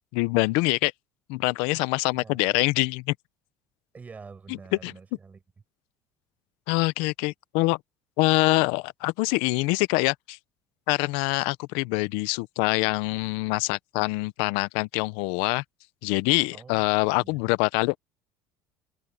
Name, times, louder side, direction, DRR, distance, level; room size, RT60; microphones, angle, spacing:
voice 1, 0.1-0.9 1.3-3.1 4.8-4.9 6.7-7.8 8.2-10.4 10.9-15.6 16.0-18.0, left 23 dB, 80° left, 0.6 m, -25 dB
voice 2, 2.1-2.6 3.9-5.4 16.5-16.9 17.2-17.4, right 5 dB, 15° right, 5.6 m, -46 dB
cardioid pair, 175°, 9 cm